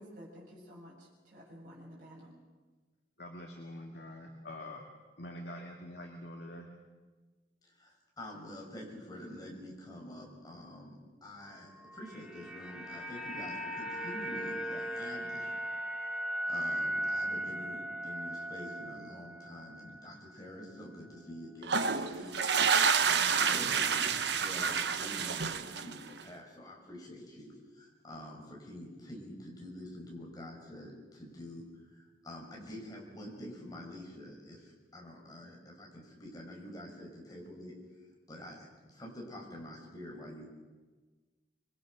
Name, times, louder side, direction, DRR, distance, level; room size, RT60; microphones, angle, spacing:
voice 1, 0.0-2.3, equal, 50° right, -5 dB, 7.9 m, -51 dB
voice 2, 3.2-4.9 5.2-6.7, left 1 dB, 65° left, 1 dB, 2.4 m, -45 dB
voice 3, 7.6-40.5, left 1 dB, 20° left, -1 dB, 5.9 m, -47 dB
sound 1, 11.8-20.1 20.4-20.6, equal, 5° right, 2.0 m, -38 dB
sound 2, 21.6-26.2, right 6 dB, 75° right, 1.1 m, -29 dB
25.5 x 23.0 x 6.4 m, 1.3 s
head